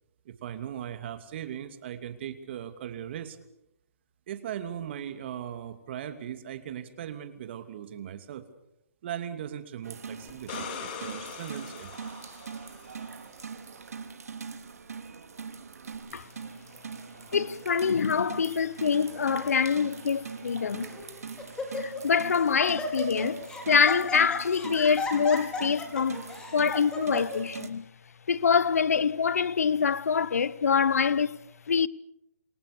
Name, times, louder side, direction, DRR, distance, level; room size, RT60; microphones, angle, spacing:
voice 1, 0.2-3.4 4.3-8.5 9.0-11.9 16.1-16.2, right 10 dB, 45° right, 2.8 m, -38 dB
sound 1, 9.8-27.7, right 5 dB, 80° right, 3.2 m, -42 dB
sound 2, 10.3-13.1 15.9-16.0, left 7 dB, 40° left, 4.9 m, -41 dB
voice 2, 17.3-20.9 21.7-27.9 28.3-31.4 31.7-31.9, left 6 dB, 75° left, 1.0 m, -25 dB
Laughter, 19.1-19.5 20.2-20.3 20.8-21.1 21.4-22.1 22.4-27.4, left 2 dB, 10° left, 5.0 m, -35 dB
28.0 x 23.5 x 6.8 m
hypercardioid pair, 150°, 8 cm